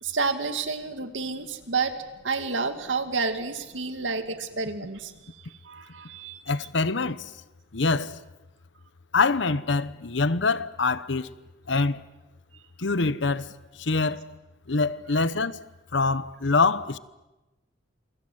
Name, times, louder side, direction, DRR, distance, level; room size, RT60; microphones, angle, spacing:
voice 1, 0.0-1.9 2.2-6.4 15.1-15.2, right 4 dB, 80° right, 2.3 m, -30 dB
voice 2, 6.5-7.2 7.7-8.1 9.1-11.3 11.7-12.0 12.8-13.5 13.8-14.2 14.7-15.6 15.9-17.0, left 4 dB, 65° left, 1.0 m, -24 dB
28.5 x 24.0 x 8.0 m
head